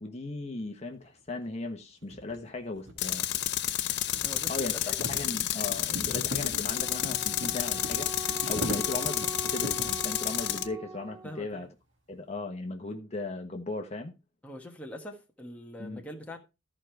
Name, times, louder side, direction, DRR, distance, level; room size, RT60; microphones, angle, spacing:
voice 1, 0.0-3.2 4.5-11.7 12.1-14.1 15.8-16.0, left 2 dB, 35° left, 1.2 m, -37 dB
sound 1, 1.2-1.3 2.0-10.0, right 1 dB, 70° right, 2.3 m, -41 dB
Tools, 3.0-10.7, left 13 dB, 60° left, 0.7 m, -30 dB
voice 2, 4.2-4.9 11.2-11.7 14.4-16.4, equal, 5° left, 1.5 m, -43 dB
Wind instrument woodwind instrument, 6.7-11.5, right 2 dB, 35° right, 1.7 m, -41 dB
14.0 x 5.0 x 4.6 m
head